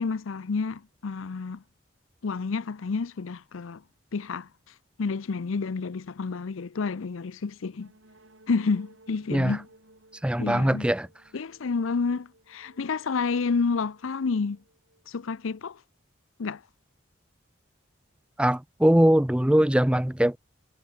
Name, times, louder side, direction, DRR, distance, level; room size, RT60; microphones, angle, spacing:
voice 1, 0.0-1.6 2.2-3.8 4.1-4.5 5.0-7.9 8.5-9.7 10.4-10.9 11.3-14.6 15.1-15.8 16.4-16.6, left 4 dB, 80° left, 0.6 m, -29 dB
sound 1, 7.8-15.5, right 1 dB, 75° right, 7.5 m, -58 dB
voice 2, 10.2-11.1 18.4-20.4, right 1 dB, 5° right, 0.4 m, -21 dB
head